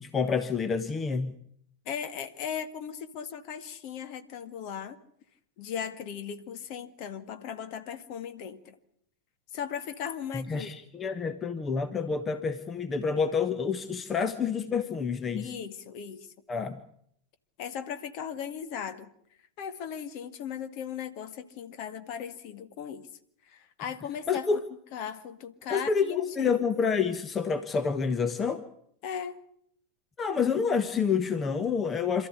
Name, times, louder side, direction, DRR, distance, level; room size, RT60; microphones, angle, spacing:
voice 1, 0.0-1.3 10.3-15.5 16.5-16.8 24.3-24.6 25.7-28.6 30.2-32.3, left 5 dB, 20° left, 11 dB, 1.3 m, -28 dB
voice 2, 1.9-5.0 5.6-8.8 9.5-10.7 15.3-16.3 17.6-19.1 19.6-23.1 23.5-24.5 24.9-26.5 29.0-29.4, left 8 dB, 45° left, 11 dB, 2.1 m, -37 dB
27.5 x 14.0 x 9.5 m, 0.71 s
figure-of-eight pair, 90°, 0 cm